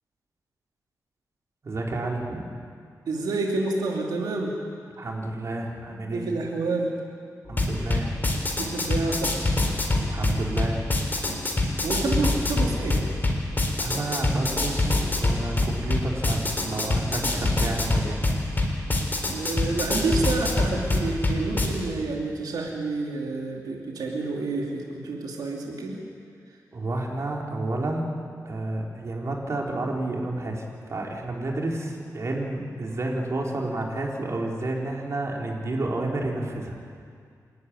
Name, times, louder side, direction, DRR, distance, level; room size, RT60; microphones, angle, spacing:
voice 1, 1.6-2.4 5.0-6.3 7.5-8.1 10.0-10.8 13.8-18.2 26.7-28.1 28.5-36.8, right 2 dB, 50° right, -1 dB, 3.9 m, -30 dB
voice 2, 3.1-4.5 6.1-6.9 8.6-9.3 11.8-13.0 19.3-26.0, right 3 dB, 90° right, -1 dB, 2.8 m, -28 dB
sound 1, 7.5-21.7, left 2 dB, 30° left, 3.8 m, -25 dB
27.5 x 12.5 x 9.7 m, 2.2 s
wide cardioid pair, 95°, 7 cm